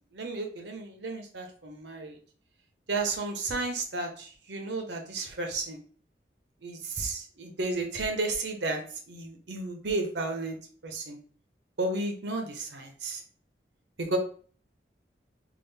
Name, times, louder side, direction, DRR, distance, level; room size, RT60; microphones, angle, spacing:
voice 1, 0.1-2.2 2.9-5.8 6.6-8.8 9.1-10.6 10.8-11.2 11.8-13.2 14.0-14.2, right 3 dB, 85° right, 3 dB, 0.9 m, -33 dB
3.7 x 2.4 x 3.4 m, 0.43 s
head